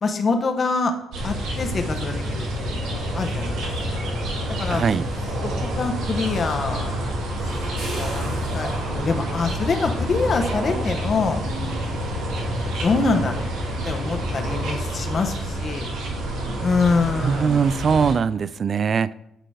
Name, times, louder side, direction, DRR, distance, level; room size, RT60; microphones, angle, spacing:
voice 1, 0.0-1.0 1.2-3.6 3.9-4.0 4.6-4.8 5.4-6.9 7.8-8.3 8.5-11.4 12.8-13.5 13.8-15.9 16.6-17.6, left 4 dB, 45° left, 1.0 m, -25 dB
sound 1, 1.1-14.7, left 1 dB, 70° right, 2.8 m, -31 dB
sound 2, 1.1-18.1, right 1 dB, 85° right, 1.6 m, -29 dB
voice 2, 4.7-5.1 13.1-13.3 17.1-19.1, right 6 dB, 50° right, 0.3 m, -21 dB
9.0 x 3.9 x 4.9 m
cardioid pair, 90°, 0 cm